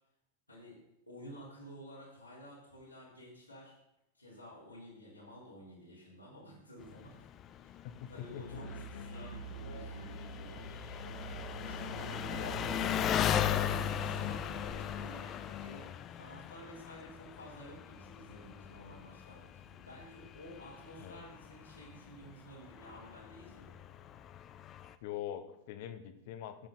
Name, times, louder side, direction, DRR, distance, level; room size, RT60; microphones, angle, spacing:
voice 1, 0.5-0.8 1.1-3.8 4.1-7.1 7.6-10.7 11.9-15.2 15.6-23.8, equal, 85° left, -7 dB, 3.4 m, -51 dB
Engine, 6.8-24.9, left 10 dB, 30° left, 0.6 m, -39 dB
voice 2, 7.8-8.6 12.3-12.7 21.0-21.2 25.0-26.7, left 10 dB, 50° left, 9 dB, 1.0 m, -43 dB
Musical instrument, 8.5-14.4, right 2 dB, 70° left, 2.4 m, -45 dB
sound 1, 10.9-15.9, right 2 dB, 75° right, 3.1 m, -52 dB
14.5 x 7.3 x 3.9 m, 0.84 s
figure-of-eight pair, 90°, 0 cm